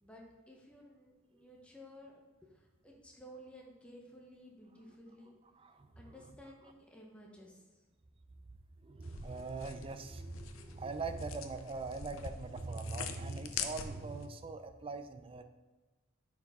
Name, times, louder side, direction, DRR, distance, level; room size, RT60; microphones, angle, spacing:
voice 1, 0.0-2.2 2.4-5.4 6.0-7.6, equal, 5° left, -2 dB, 0.9 m, -55 dB
voice 2, 5.6-6.2 8.8-15.4, right 3 dB, 25° right, 9 dB, 0.4 m, -42 dB
sound 1, 9.0-14.3, left 7 dB, 75° left, 0.6 m, -45 dB
9.4 x 4.6 x 3.6 m, 1.2 s
head